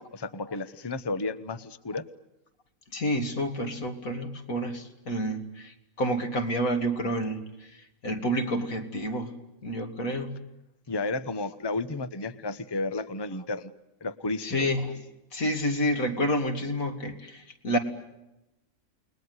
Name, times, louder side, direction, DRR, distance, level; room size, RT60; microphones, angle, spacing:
voice 1, 0.0-2.0 10.9-13.7 14.0-14.6, left 3 dB, 20° left, 12 dB, 0.9 m, -32 dB
voice 2, 2.9-9.3 9.6-10.3 14.4-15.0 15.3-17.8, equal, 85° left, 5 dB, 3.0 m, -29 dB
29.5 x 21.0 x 9.6 m, 0.92 s
omnidirectional pair, 1.4 m